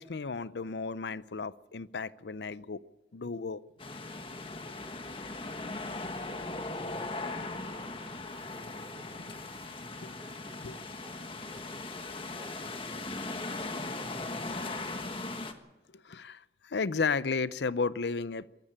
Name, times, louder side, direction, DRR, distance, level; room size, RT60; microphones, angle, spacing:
voice 1, 0.0-2.8 3.1-3.6 9.2-9.3 10.0-10.1 10.6-10.7 16.0-18.5, left 4 dB, 80° left, 18 dB, 0.6 m, -33 dB
sound 1, 3.8-15.5, left 2 dB, 30° left, 1.4 m, -39 dB
voice 2, 6.0-11.9 12.1-13.0 14.0-15.3, equal, 20° right, 3 dB, 4.8 m, -55 dB
22.5 x 13.5 x 8.8 m, 1.1 s
head